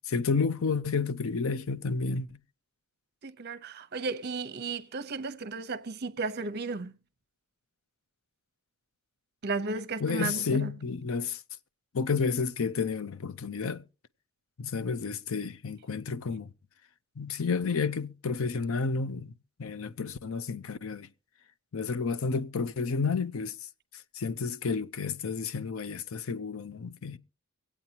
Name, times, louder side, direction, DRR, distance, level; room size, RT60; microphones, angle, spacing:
voice 1, 0.0-2.4 10.0-11.4 11.9-13.8 14.6-16.5 17.2-21.1 21.7-23.6 24.1-27.2, left 4 dB, 65° left, 0.6 m, -31 dB
voice 2, 3.2-6.9 9.4-10.7, right 4 dB, 50° right, 0.8 m, -34 dB
24.5 x 8.5 x 2.9 m
head